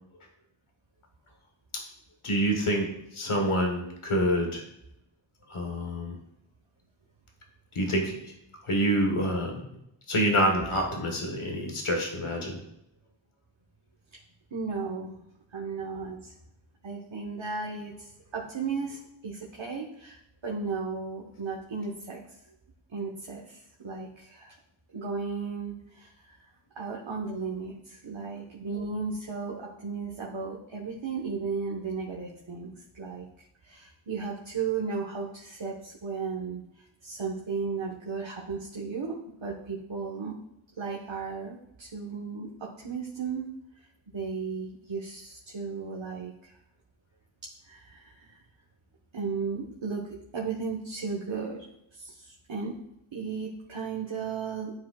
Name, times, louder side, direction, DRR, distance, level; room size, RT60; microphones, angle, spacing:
voice 1, 2.2-2.9 3.1-4.6 5.5-6.2 7.7-8.3 8.6-9.5 10.1-12.6, equal, 90° left, 2 dB, 1.3 m, -27 dB
voice 2, 14.5-15.2 15.5-16.4 16.8-22.2 22.9-24.5 24.9-26.4 26.7-40.3 40.8-43.4 43.8-43.9 44.1-46.5 47.6-48.4 49.1-52.7 53.1-54.7, right 5 dB, 65° right, -3 dB, 1.2 m, -35 dB
12.0 x 4.9 x 2.3 m, 0.82 s
wide cardioid pair, 55°, 49 cm